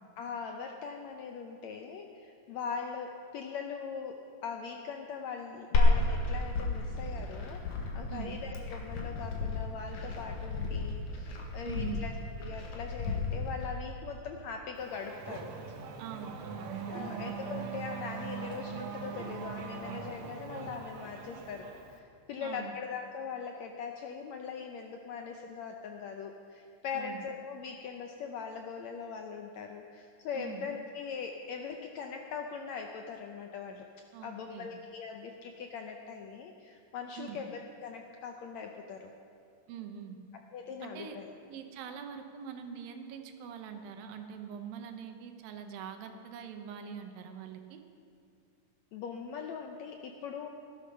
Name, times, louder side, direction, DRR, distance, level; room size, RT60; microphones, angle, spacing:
voice 1, 0.2-7.6 7.9-12.1 12.4-15.5 16.9-33.8 34.2-39.1 40.5-41.3 48.9-50.5, left 6 dB, 80° left, 3 dB, 1.6 m, -41 dB
Glass, 5.7-13.7, left 2 dB, 60° left, 3.0 m, -31 dB
voice 2, 11.6-12.0 16.0-17.3 22.4-22.7 26.9-27.2 30.3-30.7 34.1-34.7 37.2-37.4 39.7-40.2 40.8-41.2 41.5-47.8, right 8 dB, 85° right, 7 dB, 2.8 m, -43 dB
Race car auto racing / Accelerating revving vroom, 14.7-22.0, right 6 dB, 65° right, 1.9 m, -41 dB
17.5 x 12.0 x 5.5 m, 2.3 s
omnidirectional pair, 4.0 m